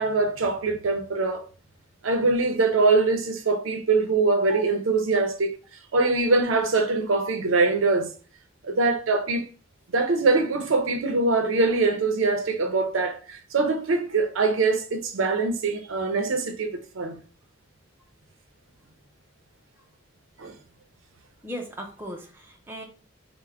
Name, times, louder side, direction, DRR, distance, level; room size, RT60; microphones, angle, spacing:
voice 1, 0.0-1.4 2.0-5.5 5.9-8.1 8.6-9.5 9.9-17.2 20.4-20.5, right 3 dB, 85° right, 0.6 m, -23 dB
voice 2, 21.4-22.8, equal, 10° right, 0.5 m, -37 dB
3.3 x 2.1 x 3.4 m
head